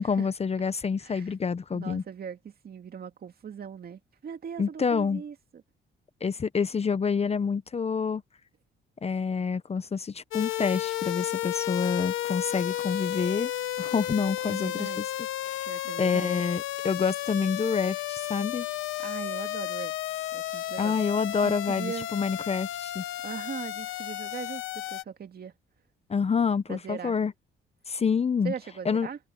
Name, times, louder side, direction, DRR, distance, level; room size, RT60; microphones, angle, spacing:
voice 1, 0.0-2.0 4.6-5.2 6.2-8.2 9.0-13.5 13.8-15.0 15.4-15.7 16.0-18.7 20.8-23.0 26.1-27.3 27.9-28.5 28.8-29.1, left 5 dB, 30° left, 0.8 m, -27 dB
voice 2, 1.0-1.3 1.7-5.6 14.4-15.2 15.7-16.4 19.0-21.0 21.4-22.1 23.2-25.5 26.7-27.2 28.4-29.2, right 7 dB, 50° right, 2.2 m, -40 dB
sound 1, 10.3-25.0, left 13 dB, 80° left, 1.1 m, -33 dB
cardioid pair, 90°, 20 cm